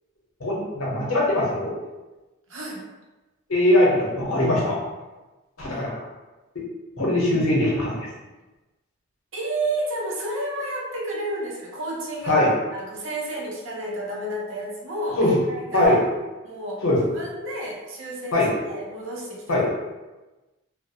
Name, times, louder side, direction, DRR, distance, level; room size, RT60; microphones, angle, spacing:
voice 1, 0.4-1.7 3.5-4.8 5.6-5.9 6.5-6.6 7.0-8.1 12.3-12.5 15.2-15.4 15.7-16.0 16.8-17.1 18.3-18.5 19.5-19.6, left 1 dB, 75° left, -4 dB, 0.8 m, -21 dB
voice 2, 2.5-2.8 9.3-12.4 12.7-16.0 16.4-16.8 17.1-19.6, right 1 dB, 65° right, -2 dB, 0.6 m, -31 dB
2.3 x 2.0 x 2.7 m, 1.1 s
head